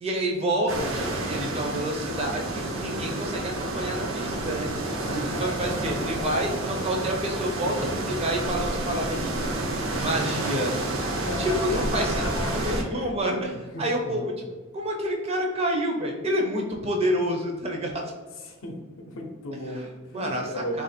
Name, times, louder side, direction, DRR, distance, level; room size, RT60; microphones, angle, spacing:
voice 1, 0.0-4.7 5.4-9.4 10.0-10.7 11.4-12.2 12.5-13.5 13.8-14.3 14.7-18.1 19.7-19.9 20.1-20.8, right 1 dB, 30° right, 1 dB, 0.5 m, -28 dB
sound 1, 0.7-12.8, right 2 dB, 70° right, 0.6 m, -29 dB
voice 2, 11.1-13.4 13.7-14.3 18.4-20.8, left 1 dB, 70° left, 2 dB, 0.6 m, -35 dB
2.8 x 2.5 x 4.2 m, 1.3 s
head